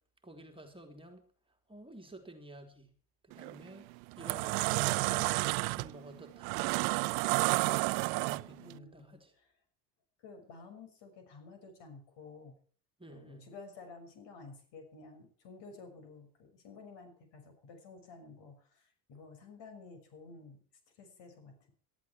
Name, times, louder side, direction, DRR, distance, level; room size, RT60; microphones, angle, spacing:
voice 1, 0.2-1.3 1.7-2.9 3.2-3.9 4.2-6.6 8.1-9.3 13.0-13.5, right 1 dB, 10° right, 3 dB, 3.5 m, -51 dB
sound 1, 3.3-3.6 4.0-8.7, right 26 dB, 65° right, 0.7 m, -31 dB
voice 2, 8.6-9.2 10.2-12.6 13.1-20.6 21.0-21.7, left 4 dB, 60° left, 7 dB, 6.3 m, -52 dB
19.0 x 13.5 x 4.6 m, 0.44 s
supercardioid pair, 95°, 48 cm